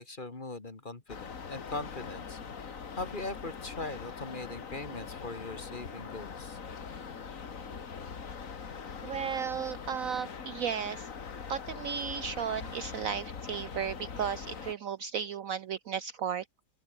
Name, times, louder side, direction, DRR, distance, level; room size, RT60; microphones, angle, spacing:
voice 1, 0.0-6.6, left 2 dB, 30° left, 2.0 m, -41 dB
sound 1, 1.1-14.7, left 6 dB, 50° left, 2.1 m, -42 dB
voice 2, 9.0-11.1 11.5-16.4, right 7 dB, 65° right, 1.0 m, -34 dB
open air
omnidirectional pair, 1.8 m